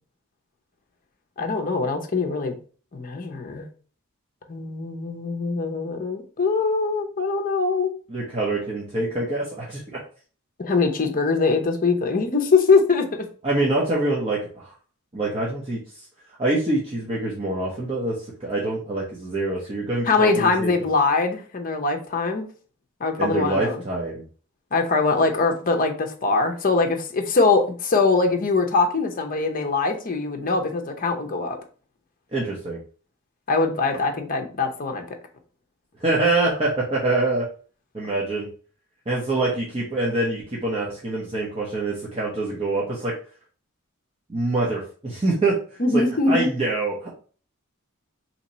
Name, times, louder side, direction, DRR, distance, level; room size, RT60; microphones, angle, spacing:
voice 1, 1.4-2.6 2.9-3.7 4.5-7.9 10.6-13.3 20.1-22.5 23.0-23.8 24.7-31.6 33.5-35.0 45.8-46.5, left 4 dB, 40° left, 4 dB, 0.6 m, -22 dB
voice 2, 8.1-10.0 13.4-14.7 15.1-15.8 16.4-20.7 23.2-24.2 32.3-32.8 36.0-37.5 37.9-38.5 39.1-43.1 44.3-46.0 46.3-47.1, right 2 dB, 30° right, -5 dB, 0.8 m, -25 dB
3.0 x 2.8 x 4.0 m, 0.41 s
head